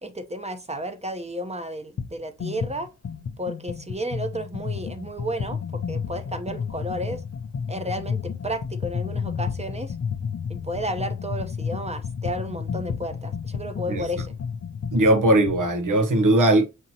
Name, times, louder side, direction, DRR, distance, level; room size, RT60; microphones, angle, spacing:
voice 1, 0.0-2.9 3.4-5.6 5.9-7.2 7.7-9.9 10.5-14.4, equal, 20° right, 0.8 m, -32 dB
sound 1, 2.0-2.1 2.4-15.7, left 6 dB, 55° left, 0.6 m, -32 dB
voice 2, 14.9-16.7, right 1 dB, 75° right, 1.0 m, -19 dB
6.3 x 2.9 x 2.8 m
cardioid pair, 55°, 32 cm